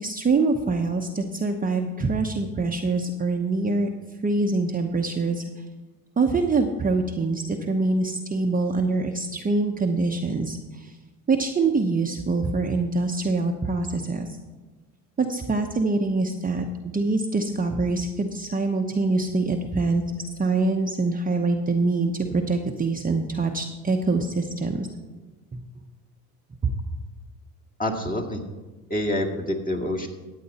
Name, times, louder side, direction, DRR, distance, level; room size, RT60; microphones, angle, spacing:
voice 1, 0.0-3.9 4.2-5.4 6.2-10.9 11.3-14.3 15.2-16.6 16.9-20.0 20.4-24.9 25.5-25.6 26.6-26.7, right 3 dB, 20° right, 2 dB, 0.9 m, -24 dB
voice 2, 27.8-28.4 28.9-30.1, left 1 dB, 20° left, 0 dB, 1.8 m, -27 dB
14.0 x 8.5 x 4.2 m, 1.2 s
supercardioid pair, 90°, 43 cm